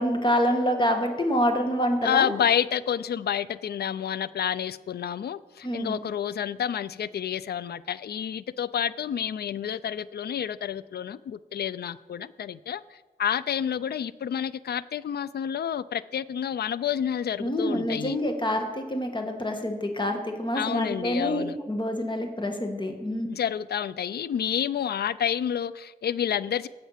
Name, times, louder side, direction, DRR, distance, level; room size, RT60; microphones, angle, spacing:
voice 1, 0.0-2.4 5.6-6.0 17.4-23.3, equal, 30° left, 4 dB, 1.6 m, -27 dB
voice 2, 2.0-18.2 20.5-21.6 23.3-26.7, left 9 dB, 80° left, 18 dB, 0.4 m, -29 dB
15.5 x 5.7 x 5.8 m, 1.3 s
cardioid pair, 70°, 16 cm